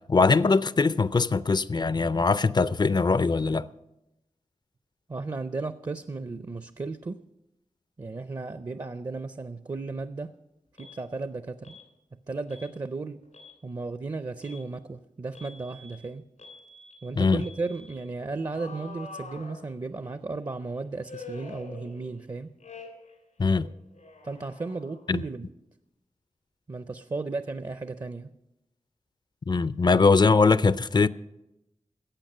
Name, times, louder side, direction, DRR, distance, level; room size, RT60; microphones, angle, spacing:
voice 1, 0.0-3.7 17.2-17.4 23.4-23.7 25.1-25.2 29.5-31.1, left 4 dB, 35° left, 0.4 m, -22 dB
voice 2, 5.1-7.2 8.0-10.3 10.8-11.8 12.3-13.2 13.6-16.3 17.0-22.5 24.2-25.5 26.7-28.3, right 3 dB, 35° right, 0.5 m, -35 dB
Alarm, 10.8-11.0 11.6-11.9 12.5-12.7 13.2-13.6 14.4-14.6 15.3-16.0 16.4-17.0 17.4-17.9 18.5-20.1 21.1-22.3 22.6-23.2 23.4-25.1, left 3 dB, 90° left, 2.9 m, -46 dB
14.5 x 8.5 x 6.6 m
wide cardioid pair, 80°, 12 cm